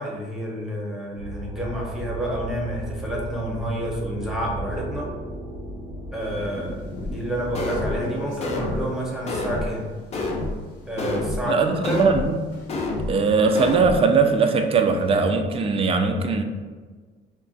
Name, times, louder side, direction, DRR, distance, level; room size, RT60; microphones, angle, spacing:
voice 1, 0.0-5.1 6.1-9.9 10.9-12.0, equal, ahead, -3 dB, 0.8 m, -29 dB
sound 1, 1.1-7.9, right 1 dB, 85° right, 0.9 m, -35 dB
sound 2, 6.2-12.9 13.2-15.1, left 1 dB, 85° left, 0.8 m, -41 dB
sound 3, 7.0-7.1 7.5-8.0 8.4-8.8 9.3-9.7 10.1-10.5 11.0-11.4 11.8-12.3 12.7-13.1 13.5-14.0, left 2 dB, 40° left, 0.5 m, -27 dB
voice 2, 11.4-12.4 13.1-16.4, right 4 dB, 35° right, 6 dB, 0.3 m, -20 dB
2.4 x 2.1 x 3.9 m, 1.4 s
cardioid pair, 110°, 17 cm